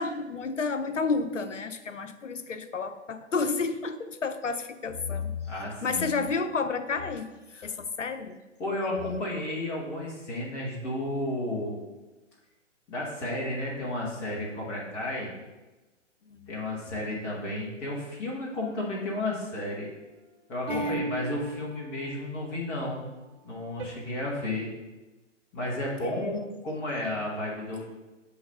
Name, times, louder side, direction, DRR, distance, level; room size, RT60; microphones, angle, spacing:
voice 1, 0.0-5.4 5.8-7.3 7.6-8.4 16.3-16.5 20.7-21.0 26.0-26.4, left 4 dB, 75° left, 10 dB, 0.7 m, -31 dB
voice 2, 5.5-6.2 7.5-7.7 8.6-11.7 12.9-15.3 16.5-19.9 20.5-23.0 23.4-24.7 25.5-27.9, left 1 dB, 5° left, -4 dB, 0.5 m, -32 dB
sound 1, 18.6-19.3 20.7-22.3 23.8-23.9, right 2 dB, 50° right, 1.7 m, -36 dB
7.8 x 3.3 x 5.4 m, 1.1 s
figure-of-eight pair, 125°, 37 cm